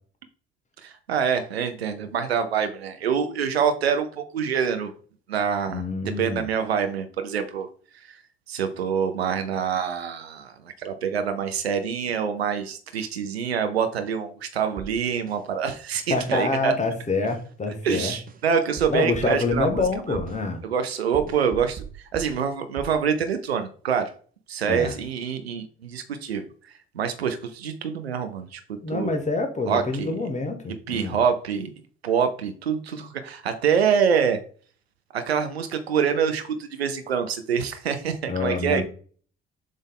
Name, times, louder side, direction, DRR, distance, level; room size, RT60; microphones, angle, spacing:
voice 1, 0.8-4.9 5.3-5.8 6.2-7.7 8.1-8.2 8.5-16.7 17.8-19.8 20.1-20.2 20.6-24.1 24.5-29.2 29.7-30.1 30.9-31.7 32.0-34.4 35.1-38.8, right 7 dB, 85° right, 7 dB, 0.5 m, -26 dB
voice 2, 5.7-6.5 16.1-18.1 18.9-20.6 24.7-24.9 28.8-31.2 38.3-38.8, left 3 dB, 25° left, 4 dB, 1.7 m, -26 dB
sound 1, 14.8-15.4 16.3-16.4 17.3-17.4 18.3-18.4 18.8-20.4 21.1-22.4 22.8-23.0, right 8 dB, 30° right, 0.5 m, -39 dB
7.3 x 3.5 x 3.7 m, 0.43 s
figure-of-eight pair, 45°, 30 cm